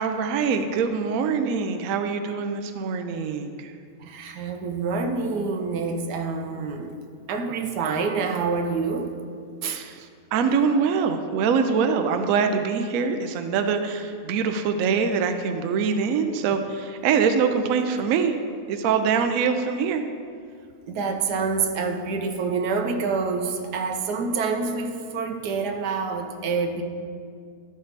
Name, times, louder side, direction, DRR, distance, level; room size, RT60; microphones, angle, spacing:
voice 1, 0.0-3.7 9.7-18.4 18.7-20.0, right 6 dB, 70° right, 7 dB, 0.9 m, -24 dB
voice 2, 4.0-7.0 7.3-9.2 9.6-9.8 20.9-26.8, right 4 dB, 85° right, 5 dB, 1.3 m, -27 dB
12.0 x 5.2 x 4.0 m, 2.2 s
omnidirectional pair, 1.7 m